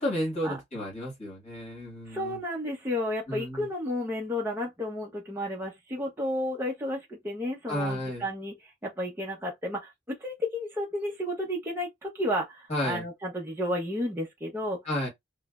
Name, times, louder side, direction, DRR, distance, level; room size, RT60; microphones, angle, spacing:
voice 1, 0.0-2.4 3.3-3.7 7.7-8.3 12.7-13.0 14.8-15.1, equal, 35° left, 1.6 m, -32 dB
voice 2, 2.1-14.8, left 1 dB, 15° right, 0.6 m, -32 dB
3.1 x 2.0 x 2.3 m
head